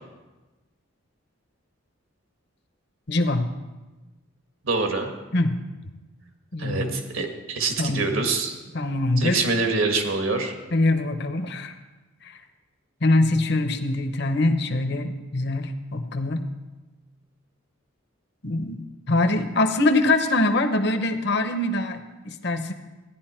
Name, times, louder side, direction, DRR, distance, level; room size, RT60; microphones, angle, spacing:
voice 1, 3.1-3.5 5.3-5.6 6.5-6.9 7.8-8.1 8.7-9.4 10.7-11.8 12.2-12.4 13.0-16.4 18.4-22.7, left 2 dB, 55° left, 7 dB, 0.8 m, -23 dB
voice 2, 4.6-5.1 6.6-8.5 9.2-10.5, right 3 dB, 80° right, 4 dB, 1.7 m, -25 dB
14.0 x 10.5 x 4.4 m, 1.1 s
head